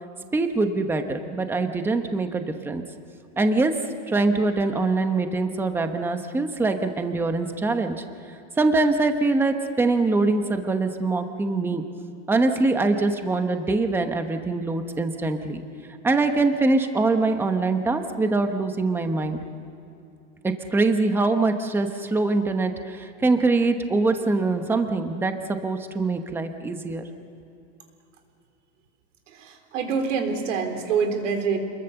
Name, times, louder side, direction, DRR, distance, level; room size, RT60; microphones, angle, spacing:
voice 1, 0.3-2.8 3.4-3.7 4.1-7.9 8.6-11.8 12.3-15.6 16.0-19.4 20.4-27.1, right 3 dB, 5° right, 6 dB, 1.0 m, -23 dB
voice 2, 29.3-31.6, right 5 dB, 90° right, 5 dB, 3.7 m, -26 dB
27.5 x 21.5 x 7.0 m, 2.8 s
supercardioid pair, 160°, 36 cm